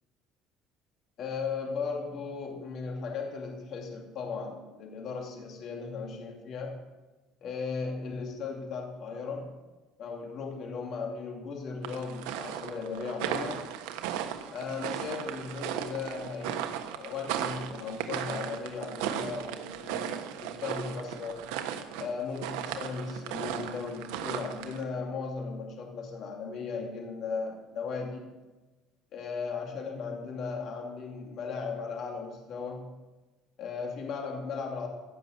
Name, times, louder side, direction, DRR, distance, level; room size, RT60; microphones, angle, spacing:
voice 1, 1.2-6.8 7.4-9.5 10.0-13.7 14.5-21.5 22.0-28.4 29.1-32.9 33.6-34.9, left 5 dB, 50° left, 1 dB, 2.7 m, -37 dB
sound 1, 11.8-24.8, right 10 dB, 90° right, 1.2 m, -36 dB
16.0 x 6.8 x 7.9 m, 1.2 s
cardioid pair, 125°, 0 cm